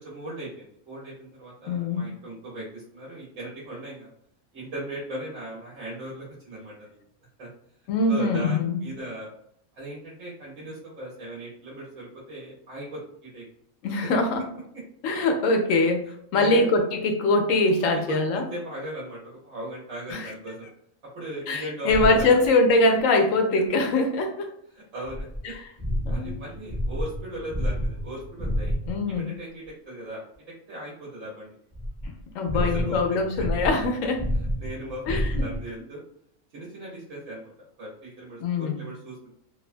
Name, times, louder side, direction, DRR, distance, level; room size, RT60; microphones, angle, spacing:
voice 1, 0.0-4.1 4.5-7.0 7.4-7.5 8.1-9.3 9.7-13.4 14.0-14.1 16.4-16.7 17.8-20.7 21.1-22.4 24.7-25.3 26.1-28.8 29.1-30.2 30.7-31.6 32.5-33.0 34.6-36.0 36.5-39.3, right 1 dB, 75° right, -5 dB, 1.2 m, -38 dB
voice 2, 1.7-2.1 7.9-8.8 13.8-14.4 15.0-18.4 20.1-20.3 21.5-24.5 25.4-25.6 26.1-26.3 28.9-29.2 32.3-34.2 35.1-35.5 38.4-38.8, left 2 dB, 85° left, 4 dB, 1.0 m, -23 dB
sound 1, 21.9-22.5 25.0-29.2 31.7-35.7, equal, 10° left, 0.8 m, -30 dB
2.9 x 2.2 x 2.4 m, 0.70 s
omnidirectional pair, 1.3 m